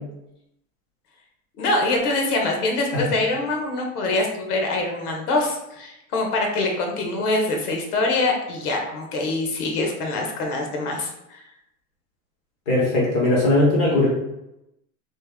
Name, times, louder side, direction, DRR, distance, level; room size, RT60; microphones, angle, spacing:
voice 1, 1.6-11.4, left 2 dB, 85° left, 1 dB, 1.1 m, -24 dB
voice 2, 12.7-14.1, left 2 dB, 20° left, -5 dB, 0.5 m, -19 dB
3.2 x 2.5 x 3.4 m, 0.88 s
supercardioid pair, 180°, 44 cm